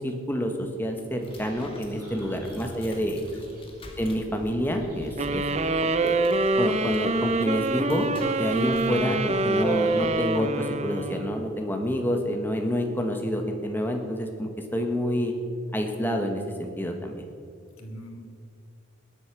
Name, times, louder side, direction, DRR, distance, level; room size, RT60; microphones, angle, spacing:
voice 1, 0.0-3.2 4.0-6.2 6.6-8.1 8.4-15.3 15.7-17.2, equal, 10° left, 3 dB, 1.3 m, -28 dB
sound 1, 0.6-9.2, left 1 dB, 25° left, 1.6 m, -49 dB
sound 2, 1.2-10.2, right 1 dB, 45° right, 4.2 m, -51 dB
voice 2, 2.0-3.5 3.9-4.0 17.8-18.2, equal, 85° left, 3 dB, 2.1 m, -44 dB
sound 3, 5.2-11.6, right 2 dB, 30° right, 0.5 m, -25 dB
20.0 x 8.2 x 6.1 m, 2.3 s
head